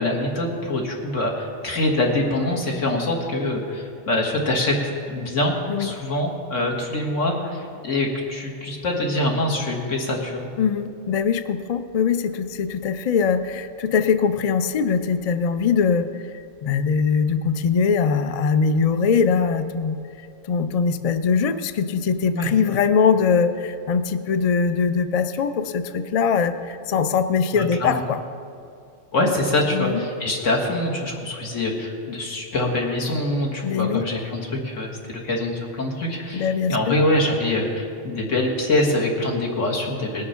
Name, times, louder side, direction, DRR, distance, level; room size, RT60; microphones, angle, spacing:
voice 1, 0.0-10.5 22.3-22.5 27.5-28.0 29.1-40.3, left 1 dB, 75° left, 0 dB, 2.1 m, -24 dB
voice 2, 10.6-16.1 16.6-20.0 20.4-28.2 29.7-30.0 33.6-34.1 36.3-36.9, left 6 dB, 55° left, 10 dB, 0.4 m, -22 dB
20.0 x 6.6 x 5.7 m, 2.5 s
omnidirectional pair, 1.3 m